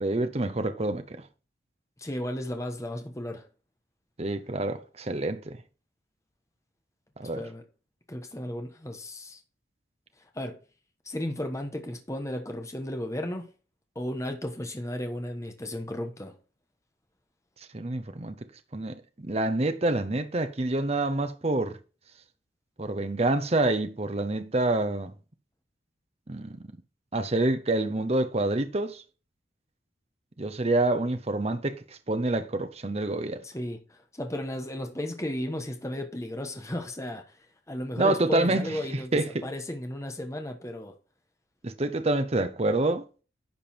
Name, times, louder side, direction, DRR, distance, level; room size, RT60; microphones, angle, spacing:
voice 1, 0.0-1.2 4.2-5.6 7.2-7.4 17.7-18.4 18.7-21.8 22.8-25.1 26.3-26.6 27.1-29.0 30.4-33.4 38.0-38.8 39.1-39.4 41.6-43.1, right 2 dB, 35° right, 0.8 m, -27 dB
voice 2, 2.0-3.5 7.4-7.6 8.1-9.4 10.3-10.6 11.0-13.5 13.9-16.3 33.4-37.4 37.7-41.0, left 1 dB, 15° left, 1.2 m, -34 dB
10.5 x 5.4 x 4.4 m
head